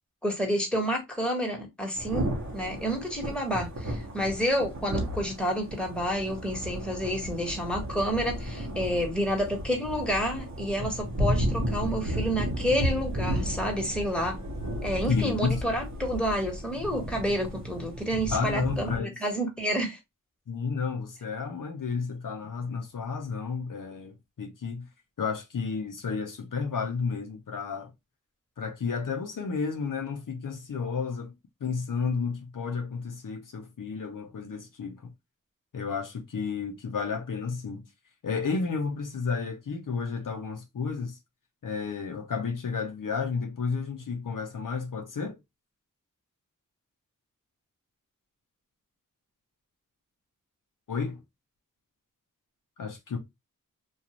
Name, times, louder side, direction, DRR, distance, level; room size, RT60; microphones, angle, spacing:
voice 1, 0.2-14.4 14.8-20.0, equal, 5° left, 1.2 m, -29 dB
Thunder / Rain, 2.0-19.0, equal, 55° right, 1.0 m, -33 dB
voice 2, 15.1-15.6 18.3-19.1 20.5-24.9 25.2-27.9 28.6-31.3 31.6-35.1 35.7-37.8 38.2-41.2 41.6-45.4 50.9-51.2 52.8-53.2, left 5 dB, 70° left, 0.7 m, -32 dB
2.5 x 2.4 x 2.8 m
cardioid pair, 40°, 33 cm